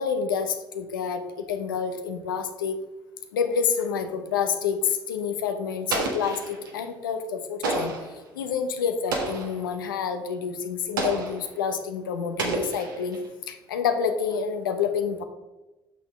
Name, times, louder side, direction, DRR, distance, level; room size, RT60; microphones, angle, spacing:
voice 1, 0.0-2.8 3.3-7.9 8.3-13.2 13.5-15.2, left 6 dB, 90° left, 8 dB, 0.8 m, -28 dB
Explosion, 5.9-6.8 7.6-8.2 9.1-9.6 11.0-11.5 12.4-13.3, right 3 dB, 90° right, 1.3 m, -30 dB
8.3 x 6.0 x 3.4 m, 1.1 s
hypercardioid pair, 65°, 11 cm